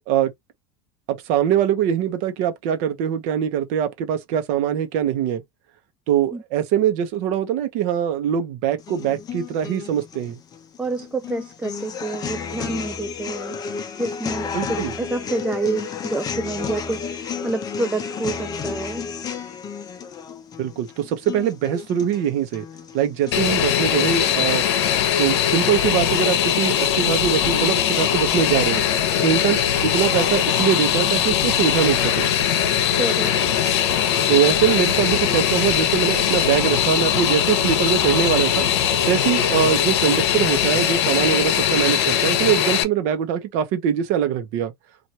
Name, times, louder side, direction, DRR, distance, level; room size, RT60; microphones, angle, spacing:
voice 1, 1.1-5.4 6.1-10.4 14.5-14.9 20.6-22.6 22.9-24.6 25.2-28.9 29.2-32.3 34.3-38.7 39.1-44.7, right 9 dB, 60° right, 0.8 m, -22 dB
sound 1, 8.8-24.8, left 6 dB, 30° left, 0.7 m, -33 dB
voice 2, 10.8-19.1 33.0-33.3, right 3 dB, 10° right, 0.3 m, -28 dB
Fixed-wing aircraft airplane, 23.3-42.8, left 10 dB, 80° left, 0.8 m, -20 dB
sound 2, 25.4-40.4, right 5 dB, 90° right, 1.3 m, -39 dB
3.0 x 2.5 x 2.8 m
supercardioid pair, 135°, 14 cm